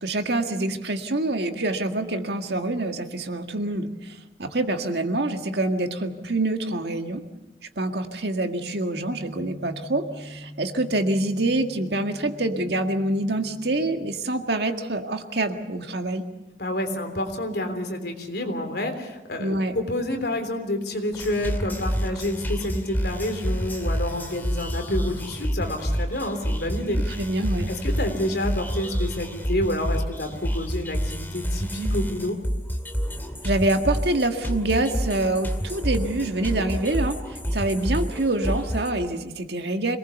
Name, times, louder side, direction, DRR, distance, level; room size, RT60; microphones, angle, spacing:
voice 1, 0.0-7.2 7.8-16.2 19.4-19.8 27.2-27.7 33.4-40.0, right 2 dB, 70° right, 5 dB, 1.9 m, -26 dB
sound 1, 9.0-14.2, equal, 25° right, 7.0 m, -43 dB
voice 2, 16.6-27.3 27.7-32.4, left 1 dB, 65° left, 5 dB, 3.4 m, -29 dB
sound 2, 21.1-38.9, equal, 10° left, 2.3 m, -28 dB
26.0 x 19.5 x 7.0 m, 1.0 s
head